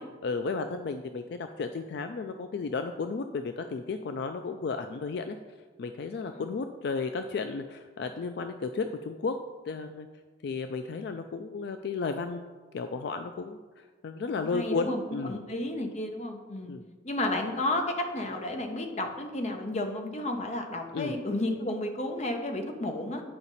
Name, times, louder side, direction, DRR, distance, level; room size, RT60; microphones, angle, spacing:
voice 1, 0.0-5.4 5.8-9.4 9.7-10.1 10.4-15.4 16.7-16.9 20.9-21.2, left 4 dB, 65° left, 7 dB, 0.4 m, -33 dB
voice 2, 14.4-15.0 15.3-16.7 17.0-23.2, left 1 dB, 40° left, 5 dB, 0.8 m, -32 dB
8.8 x 4.9 x 4.1 m, 1.3 s
head